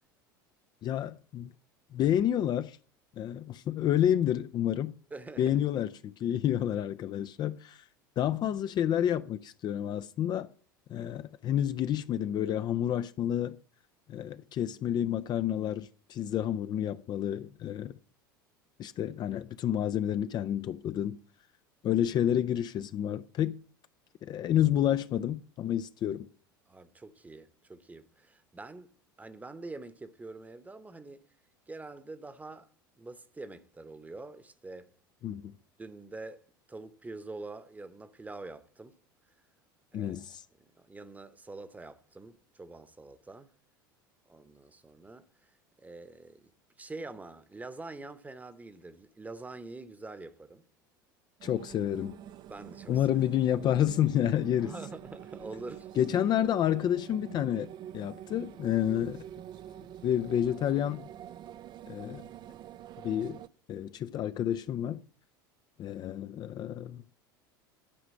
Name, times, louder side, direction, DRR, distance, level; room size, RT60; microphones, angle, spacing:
voice 1, 0.8-1.5 1.9-2.8 3.2-5.0 5.4-7.8 8.2-10.5 10.9-13.6 14.1-17.9 18.8-21.2 21.8-23.6 24.2-26.3 35.2-35.4 39.9-40.4 51.4-52.2 52.9-54.9 55.9-59.2 60.0-61.0 61.9-62.2 63.0-63.4 63.7-65.0 65.8-67.0, left 10 dB, 40° left, 0.5 m, -29 dB
voice 2, 5.1-5.6 26.7-28.9 29.2-31.3 31.7-32.7 33.0-34.9 35.8-36.4 36.7-39.0 39.9-40.3 40.6-43.5 44.3-45.5 45.8-46.5 46.8-50.7 52.5-53.1 54.6-56.3, right 3 dB, 15° right, 1.0 m, -45 dB
sound 1, 51.4-63.5, right 11 dB, 40° right, 0.5 m, -46 dB
11.5 x 4.9 x 7.4 m
hypercardioid pair, 75°, 11 cm